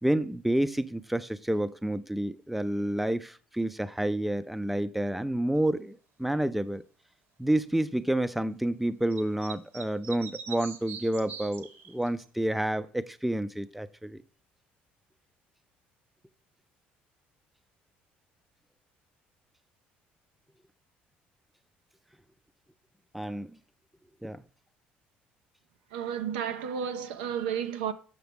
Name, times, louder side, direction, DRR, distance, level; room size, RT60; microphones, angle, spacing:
voice 1, 0.0-6.8 7.4-14.2 23.1-23.6 24.2-24.4, right 1 dB, ahead, 0.5 m, -29 dB
sound 1, 9.1-12.3, right 7 dB, 65° right, 1.2 m, -42 dB
voice 2, 25.9-27.9, right 8 dB, 85° right, 0.6 m, -32 dB
6.9 x 5.7 x 3.5 m
supercardioid pair, 70°, 5 cm